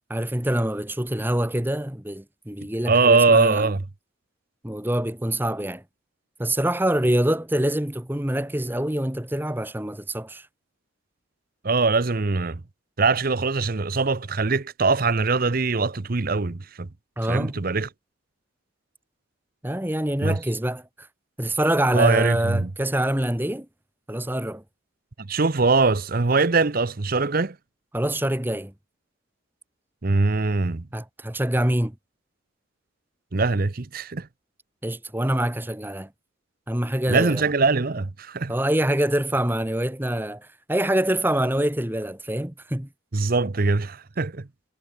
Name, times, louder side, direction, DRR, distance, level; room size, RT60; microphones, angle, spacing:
voice 1, 0.1-3.7 4.6-5.8 6.4-10.5 17.2-17.6 19.6-21.1 21.4-23.7 24.1-24.6 27.9-28.7 30.9-31.9 34.8-36.1 36.7-37.4 38.5-42.9, right 1 dB, 10° right, 1.3 m, -25 dB
voice 2, 2.9-3.8 11.6-12.6 13.0-16.9 17.3-17.9 20.2-20.4 21.9-22.7 25.2-27.6 30.0-30.9 33.3-34.3 37.1-38.5 43.1-44.5, right 3 dB, 45° right, 0.7 m, -22 dB
head